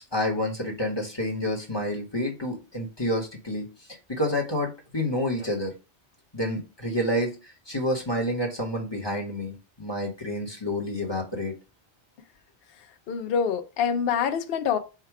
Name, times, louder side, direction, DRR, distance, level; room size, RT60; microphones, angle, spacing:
voice 1, 0.1-3.7 4.1-5.7 6.3-11.5, left 1 dB, 25° left, 1.0 m, -29 dB
voice 2, 13.1-14.8, left 7 dB, 65° left, 0.7 m, -25 dB
4.7 x 2.3 x 4.6 m
omnidirectional pair, 1.2 m